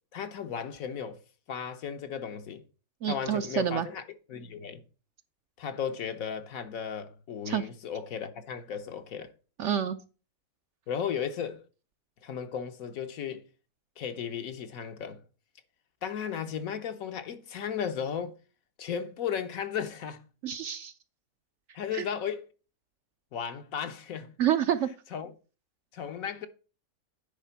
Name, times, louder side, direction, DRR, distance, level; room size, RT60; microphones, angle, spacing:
voice 1, 0.1-1.2 1.5-2.6 3.0-4.0 4.3-4.8 5.6-9.3 10.9-11.6 12.2-13.4 14.0-15.2 16.0-18.4 18.8-20.2 21.7-22.5 23.3-24.3 25.1-25.3 25.9-26.5, left 7 dB, 70° left, 1.3 m, -35 dB
voice 2, 3.0-3.9 7.5-7.6 9.6-10.0 20.4-20.9 21.9-22.0 24.4-24.9, right 9 dB, 65° right, 0.8 m, -28 dB
10.0 x 3.6 x 5.7 m
omnidirectional pair, 1.6 m